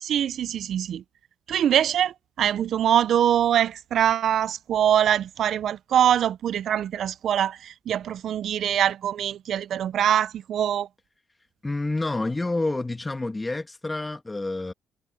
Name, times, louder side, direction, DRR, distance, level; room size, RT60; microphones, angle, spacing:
voice 1, 0.0-1.0 1.5-10.9, right 10 dB, 70° right, 0.5 m, -23 dB
voice 2, 11.6-14.7, left 2 dB, 20° left, 2.0 m, -28 dB
cardioid pair, 90°, 0 cm